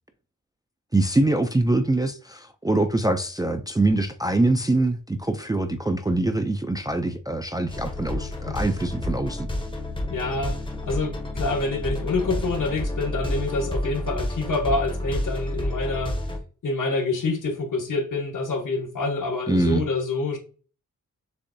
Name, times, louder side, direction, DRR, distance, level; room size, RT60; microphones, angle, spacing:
voice 1, 0.9-9.5 19.5-19.8, right 2 dB, 10° right, 0.3 m, -24 dB
sound 1, 7.7-16.4, left 1 dB, 15° left, 0.7 m, -30 dB
voice 2, 10.0-16.2 16.6-20.4, left 3 dB, 70° left, 1.2 m, -27 dB
6.6 x 2.6 x 2.6 m
wide cardioid pair, 155°, 32 cm